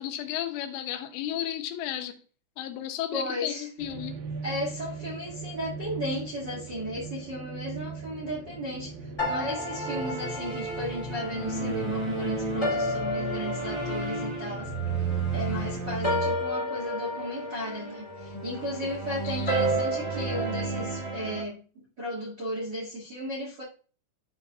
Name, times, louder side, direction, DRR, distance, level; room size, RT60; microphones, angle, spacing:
voice 1, 0.0-2.2 2.6-4.2 18.3-18.5 18.8-19.0 19.2-19.5, left 11 dB, 85° left, 3.3 m, -34 dB
voice 2, 3.1-3.7 4.4-8.9 9.2-23.6, equal, 55° right, 1.2 m, -35 dB
sound 1, 3.8-16.0, right 2 dB, 80° right, 3.6 m, -39 dB
sound 2, 9.2-21.4, right 1 dB, 35° left, 0.4 m, -30 dB
13.0 x 4.6 x 2.3 m
omnidirectional pair, 5.5 m